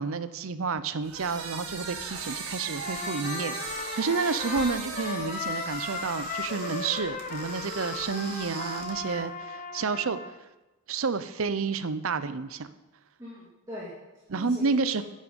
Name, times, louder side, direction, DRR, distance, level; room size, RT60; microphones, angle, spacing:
voice 1, 0.0-3.6 4.0-10.2 10.9-12.7 14.3-15.0, right 4 dB, 70° right, 13 dB, 0.6 m, -30 dB
sound 1, 1.0-9.2, right 4 dB, 85° right, 1.9 m, -39 dB
Trumpet, 2.8-10.4, left 4 dB, 35° left, 0.8 m, -36 dB
voice 2, 13.2-15.0, equal, 15° right, -8 dB, 2.4 m, -42 dB
10.5 x 9.8 x 5.3 m, 1.1 s
head